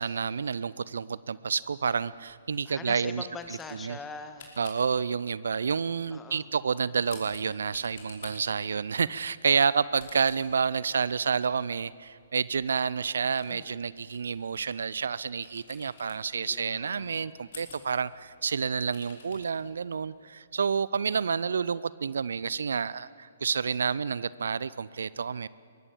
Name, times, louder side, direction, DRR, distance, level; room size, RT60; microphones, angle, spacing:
voice 1, 0.0-3.3 3.8-4.0 4.6-25.5, right 6 dB, 65° right, 19 dB, 0.5 m, -29 dB
sound 1, 1.5-20.3, left 5 dB, 50° left, 5.1 m, -54 dB
voice 2, 2.7-4.5 6.1-6.5 13.5-13.8 16.4-17.3, left 4 dB, 10° left, 7 dB, 1.8 m, -43 dB
23.0 x 22.0 x 8.6 m, 2.2 s
figure-of-eight pair, 125°, 0 cm